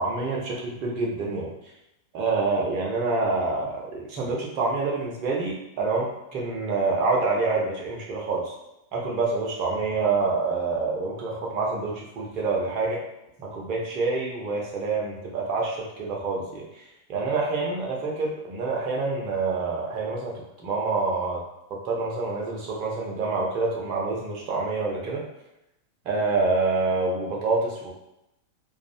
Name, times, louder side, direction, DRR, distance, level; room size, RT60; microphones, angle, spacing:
voice 1, 0.0-1.5 2.1-8.5 8.9-13.0 13.4-16.8 17.1-21.4 21.7-25.2 26.0-27.9, right 3 dB, 40° right, -3 dB, 0.6 m, -27 dB
2.4 x 2.0 x 2.6 m, 0.87 s
figure-of-eight pair, 90°, 0 cm